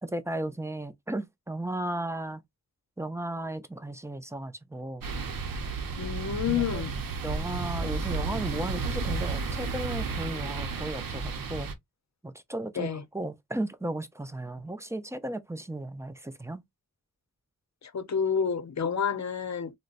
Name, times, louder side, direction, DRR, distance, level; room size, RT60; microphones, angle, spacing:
voice 1, 0.0-2.4 3.0-5.0 6.5-6.8 7.2-11.7 12.2-16.6, right 1 dB, 10° right, 0.4 m, -35 dB
sound 1, 5.0-11.7, right 4 dB, 75° right, 0.7 m, -32 dB
voice 2, 6.0-6.9 12.8-13.0 17.8-19.7, left 7 dB, 55° left, 0.7 m, -29 dB
3.7 x 2.1 x 2.4 m
wide cardioid pair, 80°, 34 cm